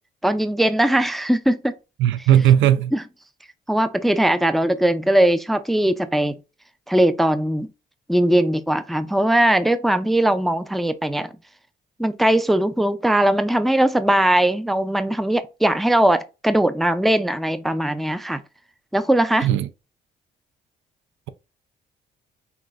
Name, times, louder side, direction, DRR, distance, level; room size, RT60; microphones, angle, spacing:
voice 1, 0.2-1.8 2.9-3.0 3.7-6.4 6.9-7.7 8.1-11.3 12.0-18.4 18.9-19.5, right 1 dB, ahead, 0.4 m, -20 dB
voice 2, 2.0-2.9 19.4-19.7, right 10 dB, 70° right, 0.5 m, -16 dB
5.8 x 2.7 x 2.4 m
cardioid pair, 90°, 20 cm